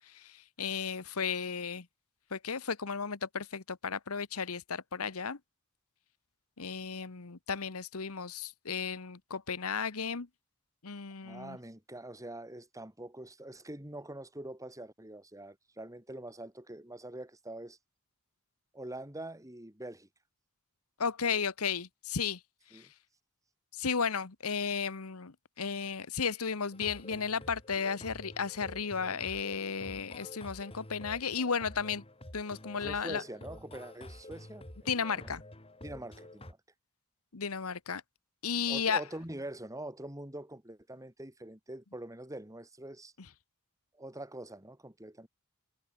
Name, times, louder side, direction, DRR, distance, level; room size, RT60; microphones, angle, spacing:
voice 1, 0.1-1.9 2.3-5.4 6.6-10.3 10.8-11.6 21.0-22.4 22.7-22.8 23.8-32.0 32.3-33.2 34.9-35.4 37.3-38.0 38.4-39.0, left 6 dB, 80° left, 1.2 m, -34 dB
voice 2, 11.2-17.8 18.7-20.1 22.7-22.9 32.7-34.9 35.1-35.3 35.8-36.6 38.7-43.1 43.9-45.3, right 1 dB, 15° right, 4.5 m, -44 dB
sound 1, 26.7-36.5, left 1 dB, 25° left, 3.9 m, -49 dB
head